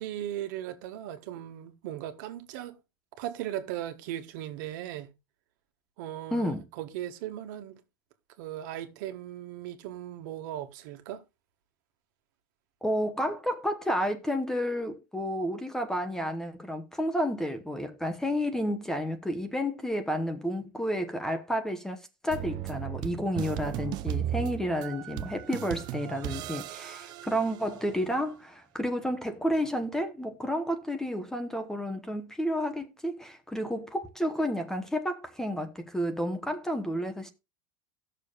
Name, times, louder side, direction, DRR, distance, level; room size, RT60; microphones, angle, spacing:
voice 1, 0.0-2.8 3.2-5.1 6.0-7.8 8.4-11.2, right 12 dB, 65° right, 1.6 m, -38 dB
voice 2, 6.3-6.6 12.8-37.3, equal, 5° left, 1.0 m, -31 dB
sound 1, 22.3-28.1, right 12 dB, 40° right, 0.6 m, -36 dB
17.0 x 6.7 x 2.4 m
supercardioid pair, 155°, 11 cm